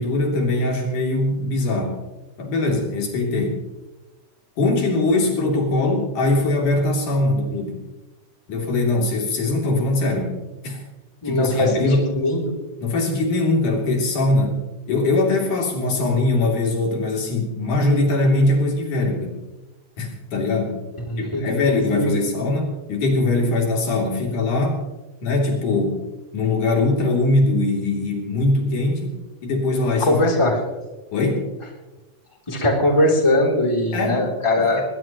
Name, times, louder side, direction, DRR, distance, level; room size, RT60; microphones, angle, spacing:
voice 1, 0.0-2.0 2.4-3.6 4.6-7.8 8.5-10.4 10.6-10.8 11.2-12.1 12.8-14.6 14.9-19.4 20.0-20.8 21.2-24.8 25.2-26.0 26.3-29.2 29.4-30.2 31.1-31.5 33.9-34.3 34.6-34.8, left 2 dB, 80° left, 0 dB, 4.6 m, -21 dB
voice 2, 11.2-11.7 12.2-12.6 21.1-21.4 21.9-22.1 30.0-30.6 32.5-34.8, left 1 dB, 10° left, 0 dB, 2.9 m, -20 dB
20.5 x 20.0 x 3.0 m, 1.1 s
omnidirectional pair, 3.5 m